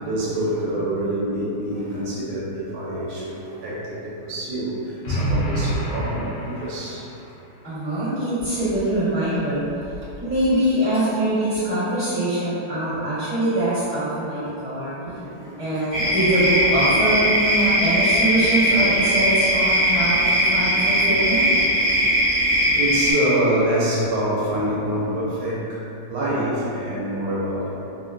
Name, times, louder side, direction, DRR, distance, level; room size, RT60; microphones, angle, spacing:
voice 1, 0.0-7.1 7.7-7.8 12.9-13.0 15.0-15.7 16.9-17.3 17.7-17.8 18.7-19.0 20.6-22.2 22.6-27.8, right 1 dB, 85° right, -7 dB, 1.5 m, -27 dB
sound 1, 5.0-7.1, right 1 dB, 80° left, 0.8 m, -26 dB
voice 2, 7.6-9.6 10.2-14.9 15.6-21.4, right 1 dB, 10° right, -16 dB, 1.1 m, -23 dB
sound 2, 15.9-23.1, equal, 35° right, 0.7 m, -19 dB
3.5 x 2.1 x 2.5 m, 2.8 s
omnidirectional pair, 2.3 m